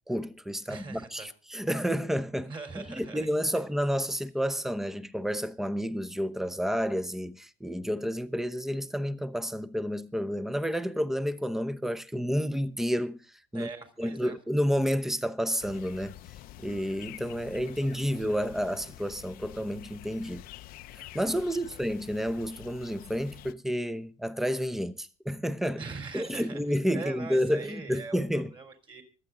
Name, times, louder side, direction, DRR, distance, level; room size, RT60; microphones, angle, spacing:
voice 1, 0.1-13.2 13.5-13.7 14.0-16.2 16.6-20.4 21.1-25.8 26.1-28.5, equal, ahead, 0.8 m, -30 dB
voice 2, 0.7-1.3 2.4-3.7 13.5-14.4 17.6-18.3 21.4-21.8 25.8-26.6 26.9-29.0, right 4 dB, 30° right, 3.8 m, -42 dB
sound 1, 15.6-23.5, left 14 dB, 65° left, 0.7 m, -48 dB
25.0 x 8.5 x 3.8 m
cardioid pair, 115°, 16 cm